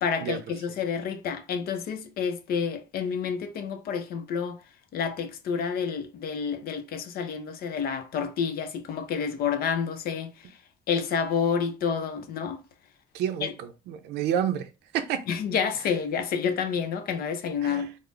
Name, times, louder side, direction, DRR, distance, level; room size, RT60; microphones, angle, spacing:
voice 1, 0.0-4.6 4.9-10.6 10.9-12.6 13.4-13.6 15.3-18.0, left 6 dB, 65° left, 0.6 m, -29 dB
voice 2, 13.1-14.7 14.9-15.2 17.6-17.8, right 9 dB, 80° right, 0.5 m, -29 dB
3.8 x 2.1 x 3.2 m
cardioid pair, 110°, 17 cm